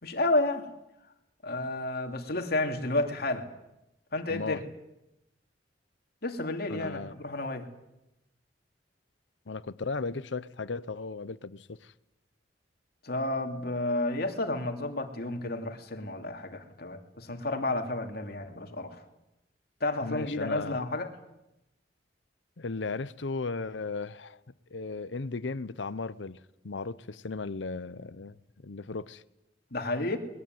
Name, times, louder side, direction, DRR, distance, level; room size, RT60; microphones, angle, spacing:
voice 1, 0.0-0.7 1.4-3.5 4.1-4.6 6.2-7.7 13.0-19.0 19.8-21.1 29.7-30.2, left 2 dB, 60° left, 2.8 m, -31 dB
voice 2, 4.3-4.6 6.7-7.2 9.5-11.9 20.0-20.8 22.6-24.4 24.7-28.4 28.6-29.2, left 4 dB, 85° left, 0.8 m, -36 dB
21.5 x 21.0 x 9.4 m
head